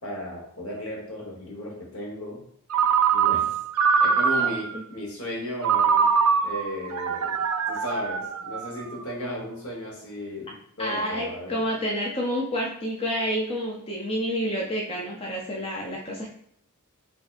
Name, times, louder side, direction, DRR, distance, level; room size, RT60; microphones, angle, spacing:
voice 1, 0.0-2.4 3.1-3.6 4.0-6.1 6.4-7.3 7.7-11.6, equal, 70° left, -2 dB, 1.2 m, -35 dB
Ringtone, 2.7-4.8 5.6-9.0, right 6 dB, 75° right, 0.4 m, -23 dB
voice 2, 4.3-4.8 10.8-16.3, equal, 25° left, -2 dB, 0.5 m, -29 dB
4.4 x 2.7 x 2.5 m, 0.70 s
head